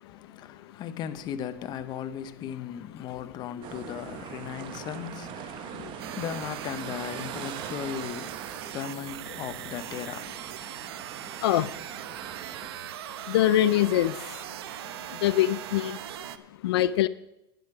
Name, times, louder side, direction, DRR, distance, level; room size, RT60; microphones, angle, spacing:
voice 1, 0.0-10.6 11.1-11.2, left 9 dB, 35° left, 0.8 m, -37 dB
sound 1, 3.6-12.7, right 10 dB, 40° right, 0.9 m, -42 dB
sound 2, 6.0-16.4, right 12 dB, 85° right, 0.8 m, -40 dB
voice 2, 13.3-14.1 15.2-16.0 16.6-17.1, left 13 dB, 90° left, 0.5 m, -23 dB
11.5 x 9.6 x 4.9 m
supercardioid pair, 140°, 13 cm